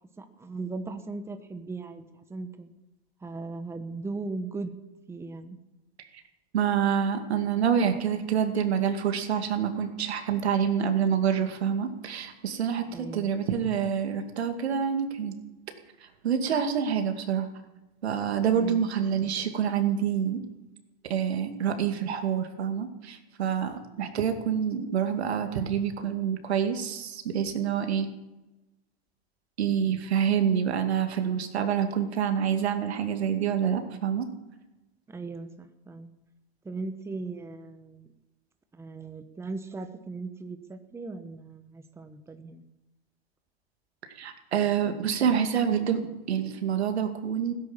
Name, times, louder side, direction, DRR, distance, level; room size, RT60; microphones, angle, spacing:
voice 1, 0.0-2.7 3.2-4.7 5.1-5.6 12.9-13.3 18.5-18.9 35.1-36.1 36.6-38.1 38.7-42.6, right 3 dB, 10° right, 8 dB, 1.1 m, -38 dB
voice 2, 6.5-15.3 16.2-17.5 18.0-20.4 21.1-28.1 29.6-34.3 44.1-46.0 46.3-47.5, right 8 dB, 80° right, 6 dB, 2.4 m, -27 dB
16.5 x 10.5 x 7.4 m, 1.0 s
hypercardioid pair, 120°, 32 cm